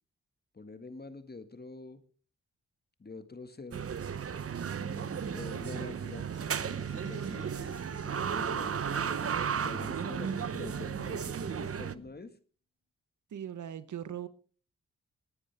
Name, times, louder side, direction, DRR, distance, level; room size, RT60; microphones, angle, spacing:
voice 1, 0.5-2.0 3.0-3.9 5.3-6.3 6.6-12.4, left 3 dB, 35° left, 10 dB, 1.8 m, -46 dB
sound 1, 3.7-11.9, right 7 dB, 50° right, 0.8 m, -34 dB
sound 2, 4.8-9.1, right 1 dB, 25° right, 7.8 m, -52 dB
sound 3, 6.3-12.1, left 4 dB, 60° left, 4.3 m, -57 dB
voice 2, 13.3-14.3, right 10 dB, 80° right, 14 dB, 1.0 m, -39 dB
20.5 x 10.0 x 3.5 m, 0.39 s
cardioid pair, 50°, 29 cm